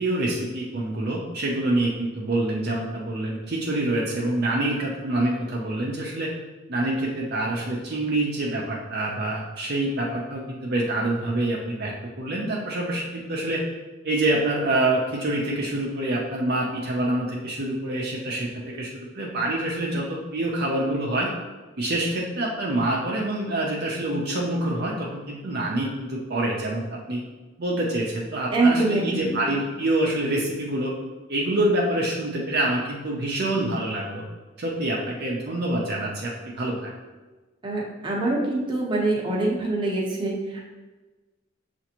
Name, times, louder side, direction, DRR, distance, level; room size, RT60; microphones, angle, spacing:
voice 1, 0.0-6.3 6.7-13.6 14.0-21.3 21.8-27.2 27.6-30.9 31.3-34.2 34.6-36.9, right 1 dB, 50° right, -3 dB, 0.5 m, -26 dB
voice 2, 28.5-29.4 37.6-40.6, right 2 dB, 25° right, -3 dB, 0.8 m, -24 dB
6.8 x 2.5 x 2.9 m, 1.2 s
head